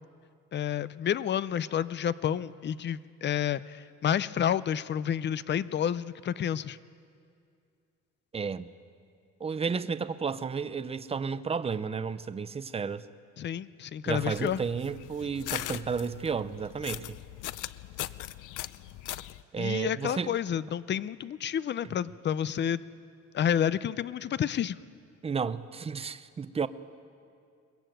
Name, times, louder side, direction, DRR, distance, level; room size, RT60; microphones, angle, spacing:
voice 1, 0.5-6.8 13.4-14.6 19.6-22.8 23.3-24.8, left 9 dB, 35° left, 0.5 m, -30 dB
voice 2, 8.3-8.7 9.4-13.0 14.0-17.1 19.5-20.3 25.2-26.7, right 5 dB, 20° right, 0.6 m, -32 dB
sound 1, 14.1-19.4, left 15 dB, 85° left, 0.7 m, -40 dB
22.0 x 21.0 x 9.1 m
cardioid pair, 145°, 30 cm